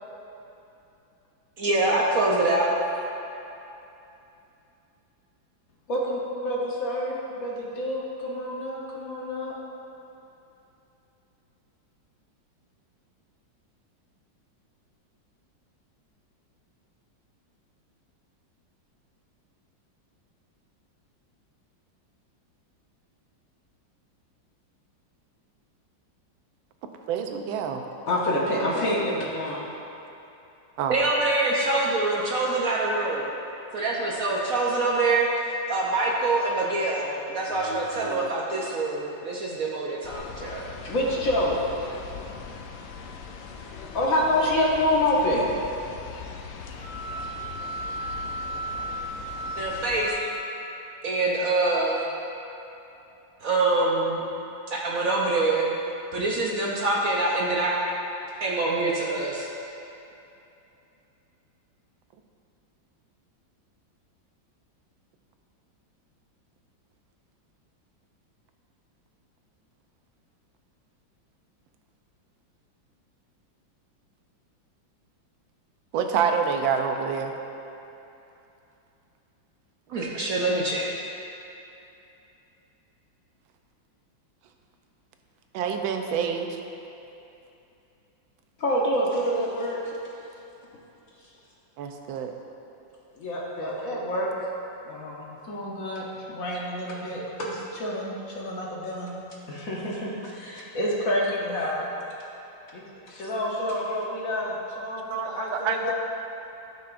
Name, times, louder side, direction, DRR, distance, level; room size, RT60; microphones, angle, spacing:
voice 1, 1.6-2.7 30.9-33.3 33.7-40.6 49.6-50.3 51.0-52.1 53.4-54.2 54.7-55.7 56.1-57.7 58.4-59.5 79.9-80.9, right 2 dB, 60° right, -3 dB, 1.0 m, -25 dB
voice 2, 5.9-9.5 28.1-29.6 37.5-38.3 38.6-38.7 40.8-41.7 43.6-45.5 88.6-90.0 93.1-94.5 94.8-99.1 99.5-100.1 100.5-101.9 102.7-105.9, left 1 dB, 55° left, -4 dB, 1.2 m, -28 dB
voice 3, 27.1-27.8 30.8-31.0 75.9-77.3 85.5-86.6 91.8-92.3 105.1-105.9, right 6 dB, 90° right, 5 dB, 1.4 m, -27 dB
sound 1, 40.0-50.1, left 5 dB, 90° left, 1.4 m, -40 dB
sound 2, 46.8-50.9, right 1 dB, 30° left, 0.7 m, -35 dB
13.0 x 5.7 x 2.5 m, 2.8 s
omnidirectional pair, 2.1 m